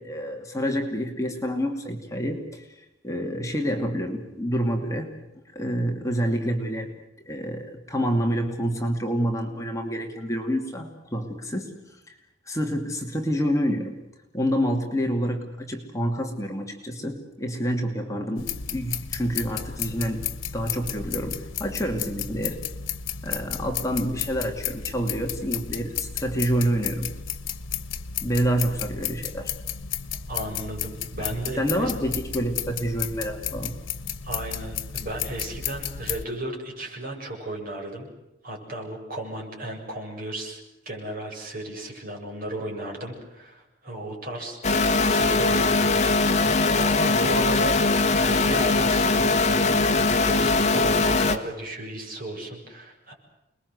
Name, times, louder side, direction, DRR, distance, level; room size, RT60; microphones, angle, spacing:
voice 1, 0.0-5.1 5.5-6.9 7.2-12.1 12.5-14.0 14.3-20.2 20.5-22.6 23.2-27.1 28.2-29.5 31.2-31.3 31.6-33.8, equal, 15° left, 2 dB, 2.5 m, -28 dB
sound 1, 18.4-36.3, left 8 dB, 90° left, 1.4 m, -33 dB
voice 2, 30.3-31.9 34.2-38.1 38.4-40.6 40.9-44.6 45.0-47.9 48.1-53.1, right 1 dB, 45° right, 1 dB, 7.5 m, -35 dB
sound 2, 44.6-51.4, left 3 dB, 35° left, 1.7 m, -21 dB
29.5 x 21.5 x 7.9 m, 0.92 s
head